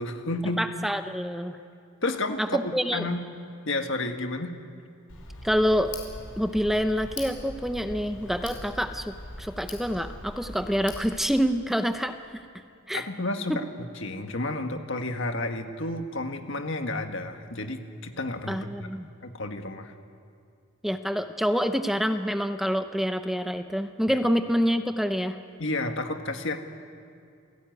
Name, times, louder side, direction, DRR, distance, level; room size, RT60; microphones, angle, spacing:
voice 1, 0.0-0.7 2.0-3.2 3.6-4.5 12.9-18.9 19.2-19.9 24.1-24.2 25.6-26.6, left 2 dB, 55° left, 6 dB, 1.7 m, -31 dB
voice 2, 0.6-1.6 2.5-3.1 5.4-5.9 6.4-12.4 12.9-13.0 13.5-13.6 18.5-19.1 20.8-25.4, equal, ahead, 8 dB, 0.7 m, -27 dB
Tick, 5.1-11.1, left 2 dB, 90° left, 5.3 m, -41 dB
28.0 x 17.5 x 9.4 m, 2.4 s
head